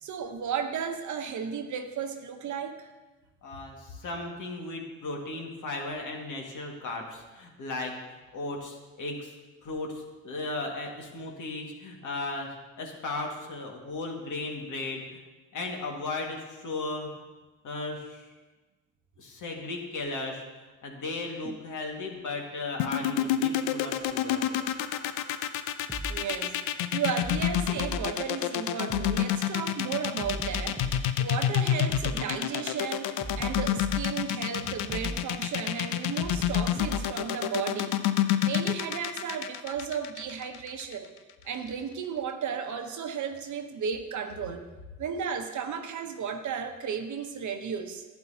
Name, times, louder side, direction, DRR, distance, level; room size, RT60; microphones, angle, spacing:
voice 1, 0.0-2.9 21.4-21.5 26.1-26.6 26.9-41.1 41.4-44.6 45.0-48.1, right 7 dB, 50° right, 6 dB, 1.0 m, -34 dB
voice 2, 3.4-9.3 9.6-15.1 15.5-17.2 17.6-18.3 19.2-24.4, left 2 dB, 55° left, 0 dB, 2.0 m, -36 dB
sound 1, 22.8-40.9, left 12 dB, 75° left, 0.6 m, -28 dB
sound 2, 25.9-26.2 27.2-28.1 28.9-29.2 30.2-31.1 31.9-32.2 33.2-34.1 34.9-35.2 36.2-37.1, right 1 dB, 10° right, 0.9 m, -36 dB
11.5 x 9.1 x 2.8 m, 1.2 s
supercardioid pair, 65°, 37 cm